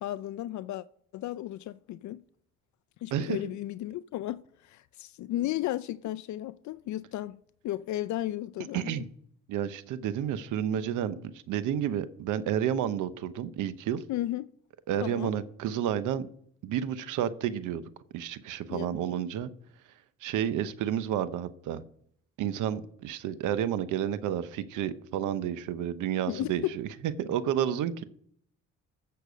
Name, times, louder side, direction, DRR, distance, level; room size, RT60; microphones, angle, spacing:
voice 1, 0.0-0.8 1.1-2.2 3.0-9.0 14.1-14.4 15.0-15.3 18.7-19.0 26.3-26.8, left 14 dB, 70° left, 0.5 m, -34 dB
voice 2, 8.7-9.1 9.5-14.0 14.9-16.3 16.6-17.8 18.1-19.5 20.2-21.8 22.4-26.9 27.2-28.0, right 10 dB, 90° right, 0.9 m, -30 dB
15.0 x 6.7 x 5.1 m
cardioid pair, 90°, 30 cm